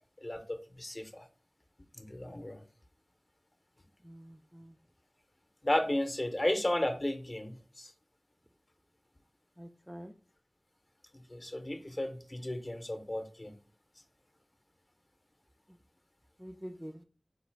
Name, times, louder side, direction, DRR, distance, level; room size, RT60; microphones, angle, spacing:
voice 1, 0.2-1.3 2.0-2.6 5.6-7.9 11.1-13.5, left 1 dB, 40° left, 7 dB, 0.6 m, -34 dB
voice 2, 4.0-4.8 9.6-10.1 16.4-17.0, equal, 10° right, 5 dB, 0.3 m, -46 dB
4.0 x 2.4 x 4.5 m, 0.40 s
wide cardioid pair, 45°, 0 cm